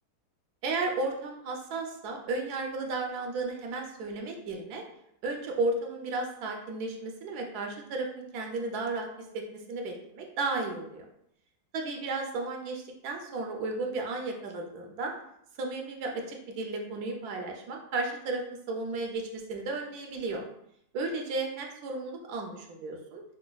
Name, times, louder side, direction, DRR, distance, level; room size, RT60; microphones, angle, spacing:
voice 1, 0.6-4.8 5.2-9.4 9.7-11.0 11.7-15.1 15.6-18.4 18.7-20.4 20.9-23.2, right 3 dB, 80° right, 2 dB, 1.1 m, -34 dB
4.9 x 2.2 x 2.2 m, 0.75 s
omnidirectional pair, 1.7 m